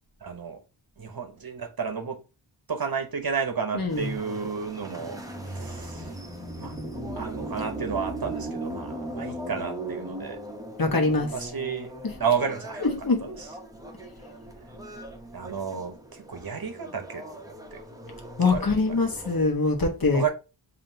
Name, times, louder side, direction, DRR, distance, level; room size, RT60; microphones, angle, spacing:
voice 1, 0.2-0.6 1.0-2.2 2.7-6.2 6.6-6.8 7.2-10.4 11.3-11.9 12.2-12.8 13.2-13.5 15.3-17.8 18.5-19.0 20.1-20.3, right 6 dB, 45° right, 0.9 m, -32 dB
sound 1, 3.9-19.4, right 1 dB, 5° right, 0.7 m, -38 dB
voice 2, 10.8-11.3 12.0-12.1 12.8-13.4 18.4-20.2, left 3 dB, 45° left, 1.1 m, -23 dB
7.3 x 2.7 x 2.6 m
wide cardioid pair, 105°, 49 cm